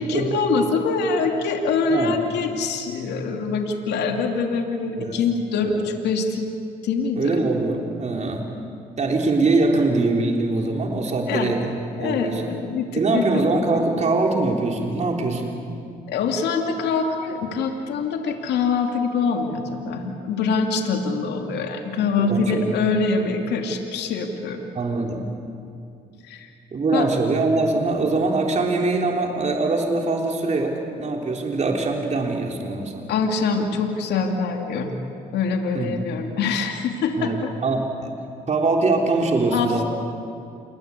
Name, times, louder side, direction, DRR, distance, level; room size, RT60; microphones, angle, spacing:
voice 1, 0.0-6.5 6.8-7.4 11.3-11.5 12.0-13.8 16.1-24.6 26.3-26.5 26.9-27.1 33.1-35.0 35.3-37.5 39.5-39.8, left 4 dB, 75° left, 3 dB, 2.8 m, -24 dB
voice 2, 7.2-8.4 9.0-12.5 12.9-15.5 22.2-22.7 24.8-25.3 26.7-33.0 35.7-36.2 37.2-38.1 38.5-39.8, right 3 dB, 40° right, 1 dB, 3.6 m, -23 dB
28.5 x 21.5 x 8.4 m, 2.5 s
supercardioid pair, 80°, 18 cm